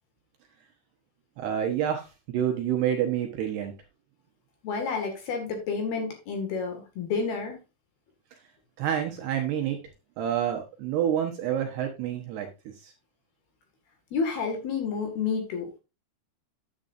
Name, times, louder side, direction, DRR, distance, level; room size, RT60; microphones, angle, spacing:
voice 1, 1.4-3.7 8.8-9.8 10.2-12.5 12.8-12.9, right 10 dB, 70° right, 2 dB, 2.7 m, -28 dB
voice 2, 4.6-7.6 14.1-15.7, left 5 dB, 60° left, 3 dB, 3.4 m, -30 dB
10.0 x 8.9 x 2.6 m, 0.27 s
omnidirectional pair, 5.7 m